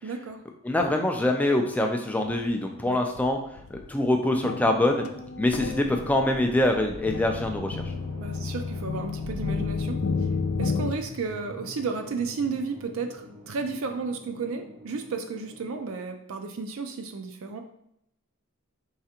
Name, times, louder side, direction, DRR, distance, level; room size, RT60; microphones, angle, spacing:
voice 1, 0.0-0.4 2.8-3.0 8.2-10.0 10.6-17.6, right 4 dB, 70° right, 6 dB, 0.4 m, -33 dB
voice 2, 0.6-3.4 3.7-5.0 5.4-7.8, left 1 dB, 5° left, 3 dB, 0.3 m, -24 dB
sound 1, 2.2-2.5 3.2-3.3 3.6-10.9, left 4 dB, 80° left, 0.4 m, -32 dB
sound 2, 5.4-15.9, equal, 90° right, 0.8 m, -43 dB
4.8 x 3.3 x 2.8 m, 0.77 s
head